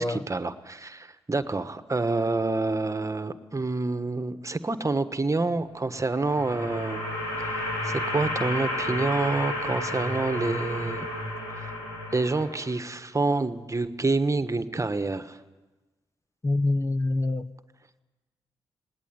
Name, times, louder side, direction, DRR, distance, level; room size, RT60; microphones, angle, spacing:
voice 1, 0.0-7.0 7.4-11.1 11.6-11.7 12.1-15.4, right 3 dB, 30° right, 1.4 m, -28 dB
sound 1, 5.8-12.9, left 1 dB, 90° left, 7.6 m, -32 dB
voice 2, 16.4-17.5, left 2 dB, 25° left, 1.0 m, -25 dB
19.5 x 19.0 x 9.5 m
supercardioid pair, 40°, 11 cm